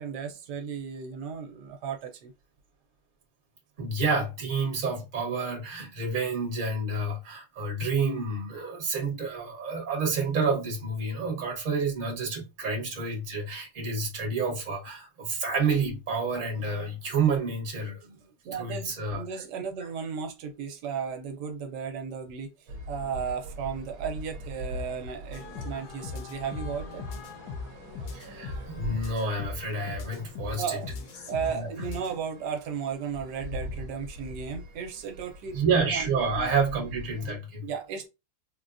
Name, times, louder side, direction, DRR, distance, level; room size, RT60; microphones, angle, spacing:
voice 1, 0.0-2.3 18.4-27.2 30.6-30.9 31.3-35.6 35.9-36.1 36.4-36.5 37.6-38.1, right 6 dB, 85° right, 1.2 m, -35 dB
voice 2, 3.8-18.2 18.6-19.4 28.1-30.8 31.5-31.7 35.5-37.7, right 4 dB, 35° right, 1.1 m, -29 dB
sound 1, 22.7-37.4, equal, 65° right, 1.1 m, -42 dB
sound 2, 25.3-32.2, left 5 dB, 75° left, 1.1 m, -40 dB
3.6 x 2.2 x 2.5 m
omnidirectional pair, 1.8 m